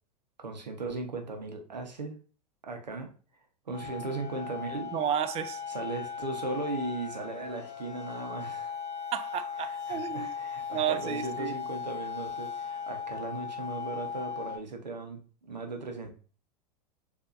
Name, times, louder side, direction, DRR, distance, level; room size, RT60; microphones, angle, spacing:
voice 1, 0.4-2.1 2.6-3.1 3.7-4.9 5.7-8.7 9.6-16.1, right 3 dB, 90° right, 1.0 m, -37 dB
sound 1, 3.7-14.6, left 6 dB, 35° left, 0.7 m, -38 dB
voice 2, 4.9-5.6 9.1-10.3 10.7-11.5, right 9 dB, 30° right, 0.5 m, -32 dB
6.7 x 2.7 x 2.5 m
hypercardioid pair, 95°, 21 cm